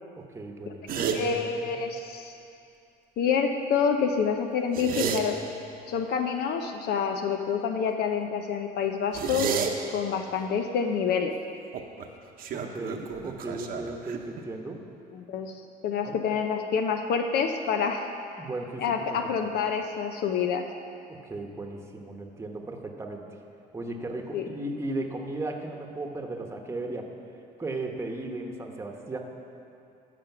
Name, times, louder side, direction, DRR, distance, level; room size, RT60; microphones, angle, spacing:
voice 1, 0.2-1.7 12.5-14.8 16.0-16.2 18.4-18.8 19.1-19.3 21.1-23.3 23.7-27.1 27.6-29.2, right 2 dB, 15° right, 2 dB, 1.0 m, -36 dB
sound 1, 0.9-1.2 4.6-5.2 9.1-9.7 11.7-12.1 12.4-14.4, right 7 dB, 60° right, 0.9 m, -31 dB
voice 2, 1.1-2.3 3.2-5.4 5.9-9.5 9.9-11.4 15.1-15.6 15.8-18.1 18.8-20.6 24.3-24.5, left 6 dB, 70° left, 5 dB, 0.6 m, -27 dB
13.5 x 5.1 x 6.0 m, 2.6 s
cardioid pair, 110°, 17 cm